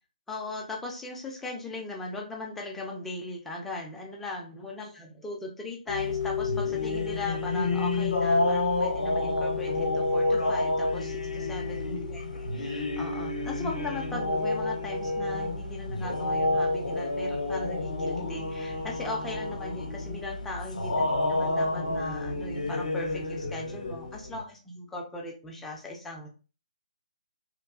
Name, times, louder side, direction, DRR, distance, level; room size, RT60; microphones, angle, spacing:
voice 1, 0.3-26.3, left 2 dB, 5° left, -1 dB, 0.4 m, -38 dB
sound 1, 5.9-24.4, left 2 dB, 60° left, 0.6 m, -29 dB
3.0 x 2.2 x 2.3 m, 0.34 s
figure-of-eight pair, 140°, 5 cm